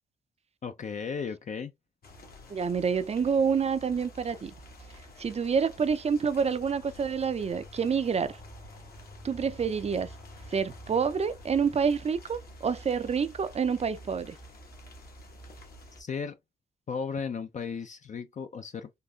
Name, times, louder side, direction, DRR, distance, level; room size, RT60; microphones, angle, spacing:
voice 1, 0.6-1.7 16.0-16.4 16.9-18.9, left 6 dB, 50° left, 0.5 m, -35 dB
sound 1, 2.0-16.0, left 1 dB, 65° left, 1.3 m, -48 dB
voice 2, 2.5-4.5 5.2-8.4 9.2-10.1 10.5-14.4, right 6 dB, 40° right, 0.5 m, -28 dB
3.8 x 2.6 x 2.3 m
supercardioid pair, 55°, 17 cm